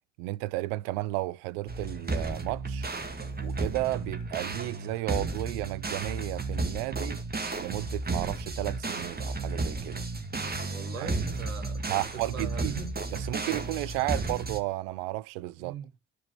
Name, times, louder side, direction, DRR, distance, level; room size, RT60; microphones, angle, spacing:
voice 1, 0.2-2.9 3.4-7.2 7.6-10.1 11.0-11.1 11.9-12.7 13.1-15.7, right 19 dB, 70° right, 0.5 m, -33 dB
sound 1, 1.7-14.6, right 3 dB, 25° right, 1.7 m, -33 dB
voice 2, 10.5-12.9 15.6-15.9, right 6 dB, 90° right, 1.5 m, -41 dB
13.0 x 5.1 x 2.8 m
hypercardioid pair, 45°, 39 cm